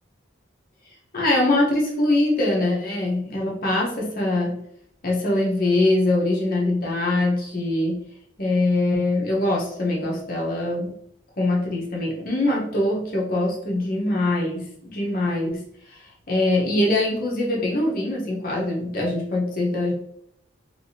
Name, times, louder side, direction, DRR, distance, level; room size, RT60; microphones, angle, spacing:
voice 1, 1.1-4.6 5.0-8.0 8.4-10.9 11.4-15.6 15.9-16.0 16.3-19.9, left 2 dB, 45° left, -2 dB, 0.9 m, -23 dB
3.4 x 3.2 x 2.7 m, 0.72 s
head